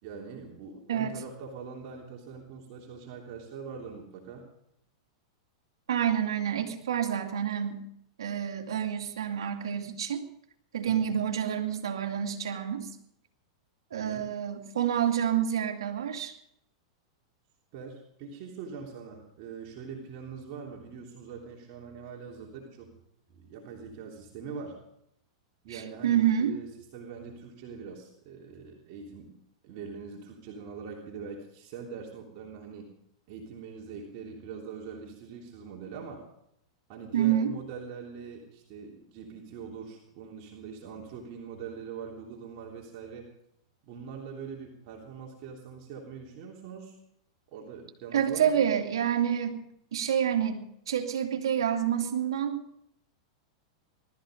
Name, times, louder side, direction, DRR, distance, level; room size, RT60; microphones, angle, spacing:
voice 1, 0.0-4.5 10.8-11.2 13.9-14.3 17.7-22.9 23.3-24.8 25.6-29.3 29.6-32.9 33.3-36.2 36.9-43.3 43.8-47.0 47.5-48.6, right 6 dB, 50° right, -1 dB, 3.2 m, -43 dB
voice 2, 5.9-7.9 8.2-10.2 10.7-12.9 13.9-16.3 25.7-26.5 37.1-37.5 48.1-49.6 49.9-52.6, right 9 dB, 80° right, 4 dB, 2.5 m, -28 dB
20.0 x 13.5 x 5.2 m, 0.76 s
hypercardioid pair, 110°, 3 cm